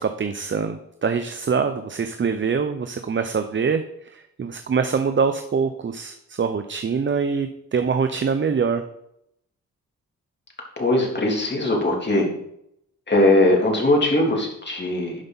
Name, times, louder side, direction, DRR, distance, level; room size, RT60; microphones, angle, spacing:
voice 1, 0.0-3.8 4.1-8.8, right 5 dB, 35° right, 8 dB, 0.7 m, -24 dB
voice 2, 10.8-12.3 13.1-15.1, left 1 dB, 30° left, -1 dB, 3.2 m, -20 dB
11.5 x 5.1 x 4.1 m, 0.76 s
cardioid pair, 60°, 34 cm